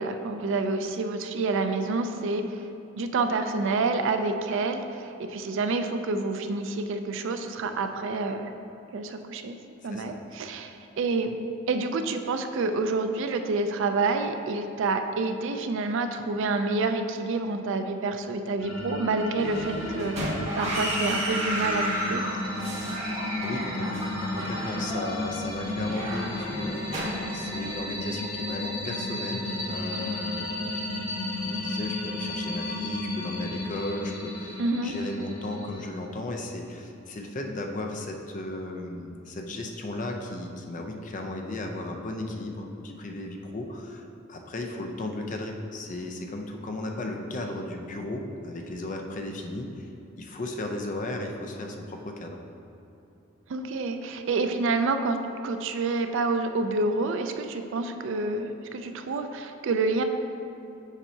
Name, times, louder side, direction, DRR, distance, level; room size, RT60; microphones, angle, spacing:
voice 1, 0.0-2.6 3.0-8.5 8.9-9.6 9.8-11.4 11.7-22.2 34.6-34.9 53.5-55.2 55.4-60.0, right 3 dB, 65° right, 7 dB, 0.4 m, -28 dB
voice 2, 9.9-10.6 23.0-24.1 24.3-44.0 44.3-49.9 50.2-52.4, left 2 dB, 40° left, 2 dB, 0.5 m, -35 dB
sound 1, 18.6-35.8, left 1 dB, 80° left, 1.1 m, -33 dB
sound 2, 19.4-27.7, right 1 dB, 35° right, 1.2 m, -33 dB
7.2 x 5.4 x 2.8 m, 2.9 s
head